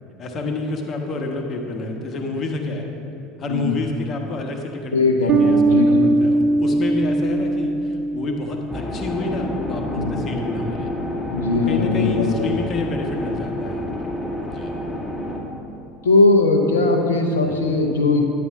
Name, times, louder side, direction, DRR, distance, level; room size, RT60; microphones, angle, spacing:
voice 1, 0.2-2.9 3.4-10.9 11.5-14.1 14.5-14.7 17.4-17.6, left 3 dB, 40° left, 3 dB, 1.3 m, -29 dB
voice 2, 4.9-6.1 9.8-10.3 11.3-12.5 16.0-18.2, left 3 dB, 85° left, 3 dB, 0.8 m, -19 dB
Bass guitar, 5.3-8.8, right 2 dB, 45° right, 0.5 m, -19 dB
sound 1, 8.7-15.4, left 1 dB, 5° left, 2.2 m, -29 dB
9.7 x 9.3 x 3.6 m, 2.7 s
hypercardioid pair, 70°, 0 cm